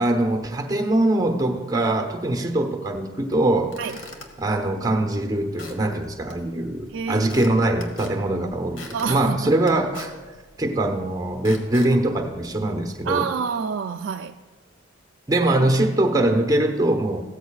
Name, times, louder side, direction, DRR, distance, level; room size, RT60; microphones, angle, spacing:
voice 1, 0.0-3.8 4.4-10.1 10.6-13.3 15.3-17.2, right 1 dB, 15° right, 0.9 m, -22 dB
Squeak / Wood, 3.6-13.0, left 3 dB, 75° left, 1.4 m, -45 dB
voice 2, 6.9-7.3 8.9-9.5 13.1-14.4, right 6 dB, 70° right, 0.3 m, -28 dB
16.0 x 13.5 x 2.4 m
head